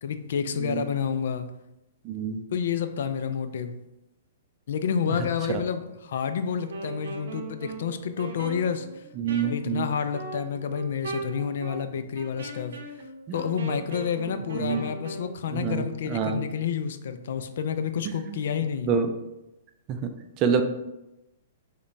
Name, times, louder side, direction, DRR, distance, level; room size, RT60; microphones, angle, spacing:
voice 1, 0.0-1.5 2.5-3.8 4.7-9.1 9.3-12.8 13.3-19.0, left 7 dB, 70° left, 9 dB, 0.3 m, -29 dB
voice 2, 2.0-2.4 9.2-9.9 13.3-13.4 14.6-14.8 15.5-15.8 16.1-16.4 18.9-19.1 20.0-20.1 20.4-20.6, right 6 dB, 35° right, 6 dB, 0.4 m, -26 dB
Wind instrument woodwind instrument, 6.6-15.3, right 3 dB, 80° right, 0.7 m, -39 dB
5.0 x 2.2 x 2.6 m, 0.93 s
hypercardioid pair, 135°, 0 cm